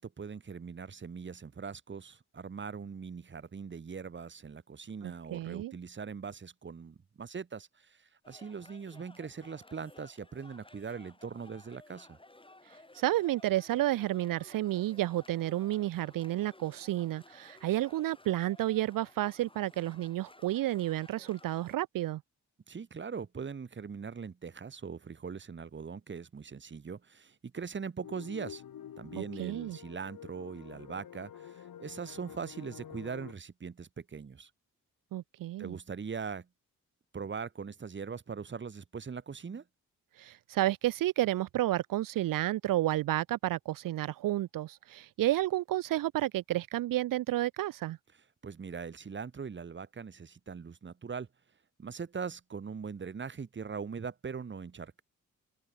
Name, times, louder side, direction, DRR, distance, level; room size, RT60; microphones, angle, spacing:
voice 1, 0.0-8.0 8.3-12.2 22.7-28.6 29.0-34.5 35.6-36.5 37.1-39.6 48.4-51.3 51.8-55.0, right 6 dB, 35° right, 1.1 m, -41 dB
voice 2, 5.0-5.7 12.9-22.2 29.4-29.8 35.1-35.8 40.2-48.0, right 15 dB, 75° right, 0.5 m, -31 dB
sound 1, 8.2-21.8, left 2 dB, 15° left, 3.7 m, -57 dB
sound 2, 28.0-33.3, left 10 dB, 80° left, 3.9 m, -48 dB
open air
cardioid pair, 70°, 33 cm